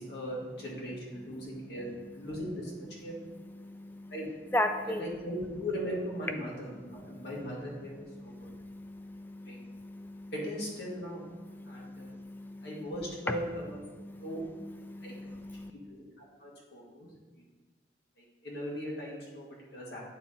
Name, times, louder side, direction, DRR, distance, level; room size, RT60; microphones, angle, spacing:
voice 1, 0.0-1.9 2.1-3.2 4.1-4.3 4.8-8.5 9.5-9.6 10.3-11.2 11.7-12.1 12.6-13.8 14.2-14.4 15.0-15.1 15.9-16.1 16.4-17.1 18.4-20.0, equal, 70° left, -4 dB, 1.7 m, -38 dB
voice 2, 1.2-1.5 1.8-2.3 2.8-5.2 6.9-7.5 7.8-10.3 10.9-13.4 13.8-15.7, left 1 dB, 10° left, 7 dB, 0.4 m, -39 dB
8.8 x 4.1 x 3.7 m, 1.3 s
head